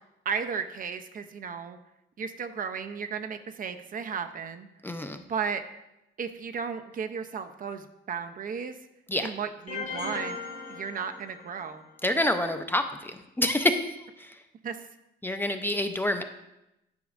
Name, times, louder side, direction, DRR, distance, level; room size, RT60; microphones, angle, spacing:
voice 1, 0.3-1.8 2.2-4.7 5.3-5.6 6.2-8.8 9.2-10.4 10.7-11.9 14.6-14.8, right 6 dB, 45° right, 8 dB, 0.5 m, -34 dB
voice 2, 4.8-5.2 9.1-9.3 12.0-14.4 15.2-16.2, left 1 dB, 10° left, 7 dB, 0.4 m, -27 dB
sound 1, 9.7-11.8, left 4 dB, 85° left, 2.4 m, -38 dB
10.5 x 5.0 x 2.4 m, 0.89 s
cardioid pair, 90°, 20 cm